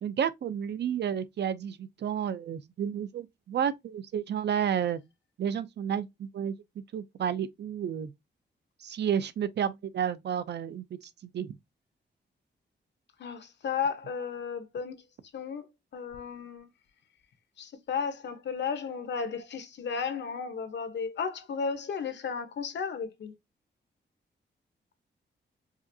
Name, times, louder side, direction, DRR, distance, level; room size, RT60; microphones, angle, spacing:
voice 1, 0.0-5.0 5.4-6.5 6.9-8.1 8.8-11.6, right 8 dB, 65° right, 0.5 m, -31 dB
voice 2, 13.2-15.0 15.3-15.7 15.9-16.7 17.6-23.3, left 6 dB, 70° left, 1.0 m, -34 dB
4.9 x 2.5 x 2.7 m
wide cardioid pair, 140°, 19 cm